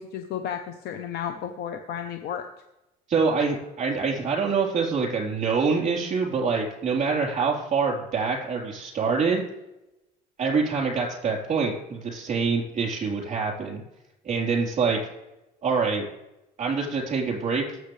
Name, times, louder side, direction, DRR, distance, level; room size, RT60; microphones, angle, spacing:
voice 1, 0.0-2.5, left 8 dB, 70° left, 6 dB, 0.9 m, -33 dB
voice 2, 3.1-9.4 10.4-13.8 14.2-15.0 15.6-16.1 16.6-17.7, right 5 dB, 45° right, -2 dB, 3.9 m, -25 dB
19.0 x 7.8 x 3.3 m, 0.93 s
cardioid pair, 110°, 17 cm